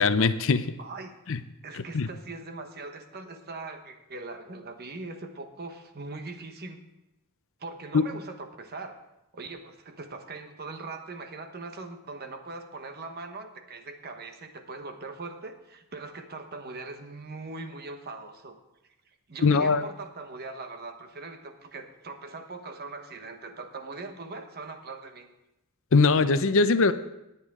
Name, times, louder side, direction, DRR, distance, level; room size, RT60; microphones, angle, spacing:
voice 1, 0.0-0.6 1.3-1.4 1.9-2.1 7.9-8.0 19.4-19.8 25.9-26.9, left 4 dB, 60° left, 12 dB, 0.6 m, -21 dB
voice 2, 0.8-1.2 1.6-6.8 7.6-9.0 9.3-18.6 19.3-25.3, right 3 dB, 45° right, 6 dB, 1.1 m, -41 dB
18.5 x 8.3 x 3.7 m, 0.90 s
head